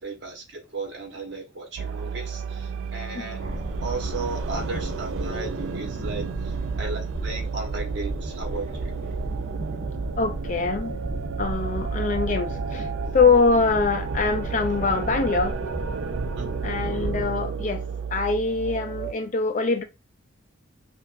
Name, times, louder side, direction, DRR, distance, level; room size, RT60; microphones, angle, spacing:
voice 1, 0.0-3.4 3.8-8.9 16.3-16.5, right 3 dB, 60° right, 1.2 m, -35 dB
sound 1, 1.8-19.1, right 6 dB, 80° right, 0.3 m, -32 dB
sound 2, 3.4-17.2, right 1 dB, 40° right, 1.0 m, -34 dB
voice 2, 10.2-10.9 11.4-12.9 13.1-15.8 16.6-17.8 18.1-19.8, left 4 dB, 40° left, 0.4 m, -23 dB
5.0 x 2.5 x 2.5 m
head